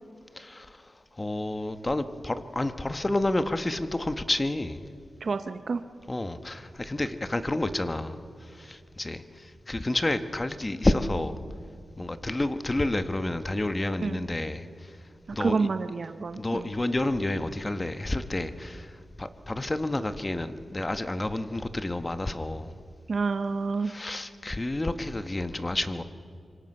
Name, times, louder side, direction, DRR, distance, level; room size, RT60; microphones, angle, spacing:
voice 1, 0.3-4.8 6.1-11.4 12.0-15.0 15.3-15.7 16.4-22.7 23.8-26.0, left 2 dB, 25° left, 1.1 m, -30 dB
voice 2, 5.2-5.8 14.0-14.2 15.4-16.7 23.1-23.9, right 4 dB, 55° right, 0.7 m, -28 dB
25.5 x 24.0 x 5.5 m
wide cardioid pair, 95°, 0 cm